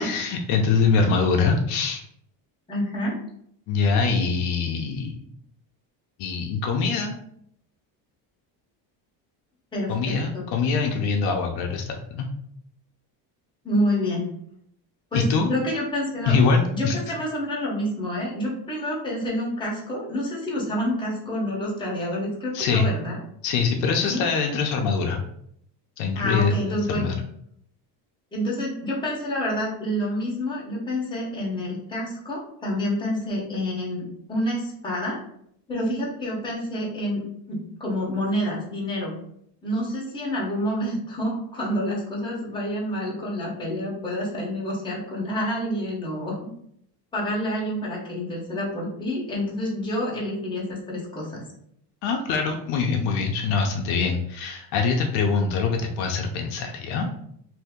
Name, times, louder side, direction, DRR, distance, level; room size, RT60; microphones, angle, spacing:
voice 1, 0.0-2.0 3.7-5.2 6.2-7.2 9.9-12.3 15.1-15.5 16.3-17.0 22.5-22.9 23.4-25.2 26.0-27.1 52.0-57.1, left 5 dB, 65° left, 2 dB, 0.6 m, -23 dB
voice 2, 2.7-3.1 9.7-10.4 13.6-14.3 15.1-16.4 16.7-23.2 24.1-24.2 26.1-27.1 28.3-35.2 35.7-39.1 39.6-46.4 47.1-51.4, equal, 10° left, -4 dB, 0.9 m, -28 dB
2.7 x 2.7 x 3.5 m, 0.70 s
cardioid pair, 155°, 42 cm